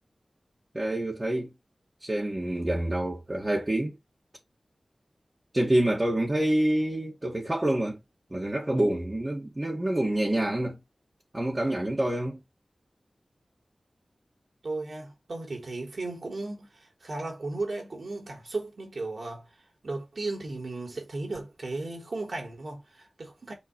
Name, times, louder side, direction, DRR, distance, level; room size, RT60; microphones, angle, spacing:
voice 1, 0.7-1.5 2.0-4.0 5.5-8.0 8.3-10.8 11.3-12.4, right 1 dB, 30° right, 2.2 m, -27 dB
voice 2, 14.6-19.5 19.8-23.5, right 2 dB, 70° right, 4.1 m, -35 dB
6.9 x 4.6 x 3.4 m
wide cardioid pair, 60°, 0 cm